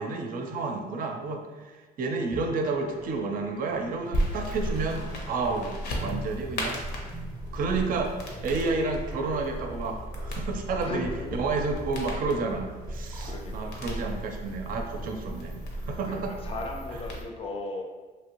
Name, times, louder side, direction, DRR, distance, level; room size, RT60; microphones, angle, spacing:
voice 1, 0.0-6.8 7.5-8.2 8.4-15.5 15.8-16.3, right 3 dB, 55° right, 4 dB, 0.5 m, -30 dB
sound 1, 2.3-15.9, right 1 dB, 15° right, 0.6 m, -45 dB
sound 2, 4.1-17.2, equal, 80° left, 0.8 m, -35 dB
voice 2, 10.8-11.4 13.2-13.9 16.1-17.8, left 2 dB, 35° left, 1 dB, 0.5 m, -36 dB
3.1 x 2.6 x 2.9 m, 1.3 s
cardioid pair, 110°, 17 cm